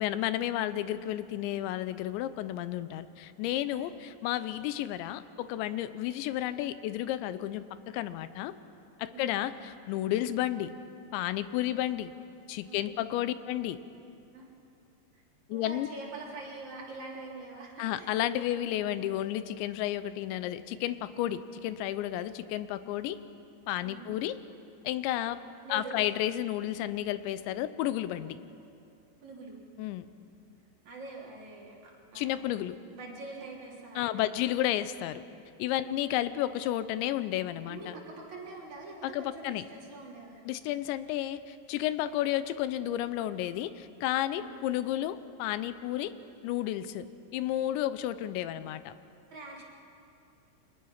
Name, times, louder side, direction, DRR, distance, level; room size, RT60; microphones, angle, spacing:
voice 1, 0.0-8.5 9.0-10.7 11.1-12.1 12.5-13.8 15.5-15.9 17.8-23.2 23.7-24.4 24.8-25.4 25.7-28.4 29.8-30.1 32.2-32.8 34.0-35.2 35.6-37.9 39.0-39.6 40.4-46.1 46.4-47.0 47.3-48.9, left 13 dB, 85° left, 13 dB, 3.1 m, -32 dB
voice 2, 3.6-4.0 9.1-9.4 12.6-13.0 14.3-14.5 15.1-15.2 15.5-18.1 23.9-24.1 25.6-26.0 29.2-29.6 30.8-32.5 32.9-34.4 35.8-36.0 37.7-40.4 44.3-44.6 49.3-49.6, right 3 dB, 45° right, -3 dB, 4.5 m, -45 dB
30.0 x 24.5 x 5.8 m, 2.6 s
omnidirectional pair, 5.1 m